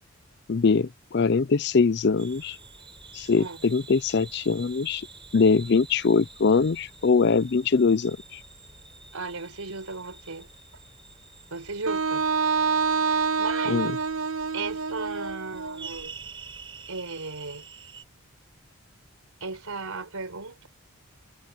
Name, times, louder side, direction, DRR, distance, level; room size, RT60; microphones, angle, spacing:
voice 1, 0.5-2.6 3.1-5.1 5.3-8.4 13.7-13.9, left 4 dB, 50° left, 0.5 m, -22 dB
sound 1, 2.2-18.0, right 4 dB, 25° right, 6.7 m, -48 dB
voice 2, 9.1-10.5 11.5-12.3 12.9-13.9 14.5-16.1 16.9-17.6 19.4-20.7, right 4 dB, 90° right, 4.4 m, -36 dB
Wind instrument woodwind instrument, 11.9-15.9, right 5 dB, 70° right, 1.3 m, -27 dB
head